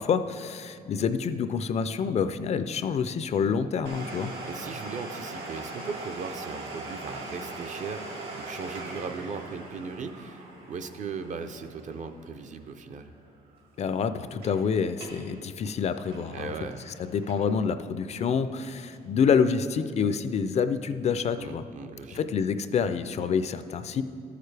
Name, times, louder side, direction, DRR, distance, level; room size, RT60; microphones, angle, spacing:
voice 1, 0.0-4.3 13.8-16.5 17.0-21.6 22.1-24.0, left 6 dB, 45° left, 11 dB, 0.4 m, -27 dB
Domestic sounds home sounds, 3.8-13.3 13.5-13.6 14.2-14.6 14.9-15.3 15.6-17.7 18.1-18.2 18.9-19.0, right 2 dB, 75° right, 2.0 m, -41 dB
voice 2, 4.5-13.1 16.3-16.9 21.4-22.2, right 5 dB, 50° right, 8 dB, 0.5 m, -38 dB
13.5 x 6.6 x 3.3 m, 2.4 s
cardioid pair, 135°, 16 cm